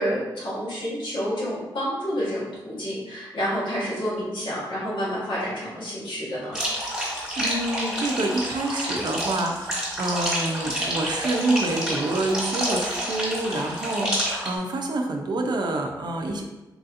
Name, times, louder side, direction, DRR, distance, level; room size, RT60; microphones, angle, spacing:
voice 1, 0.0-6.6, equal, 85° left, -8 dB, 1.2 m, -29 dB
sound 1, 6.5-14.5, equal, 10° right, 1.2 m, -28 dB
voice 2, 7.4-16.4, right 2 dB, 60° right, 2 dB, 0.5 m, -27 dB
3.0 x 2.7 x 2.5 m, 1.1 s
cardioid pair, 70°, 8 cm